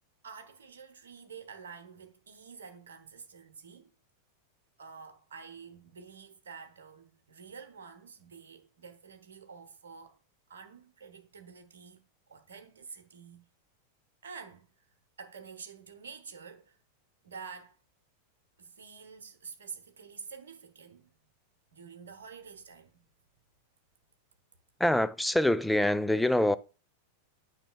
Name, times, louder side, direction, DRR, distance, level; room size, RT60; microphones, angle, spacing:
voice 1, 0.2-3.9 4.8-10.2 10.5-12.0 12.3-13.4 14.2-14.7 15.2-16.8 17.2-17.8 18.6-21.1 21.7-23.0, right 5 dB, 65° right, 1.0 m, -48 dB
voice 2, 24.8-26.6, left 1 dB, 5° left, 0.4 m, -25 dB
8.9 x 5.9 x 2.4 m
figure-of-eight pair, 90°, 0 cm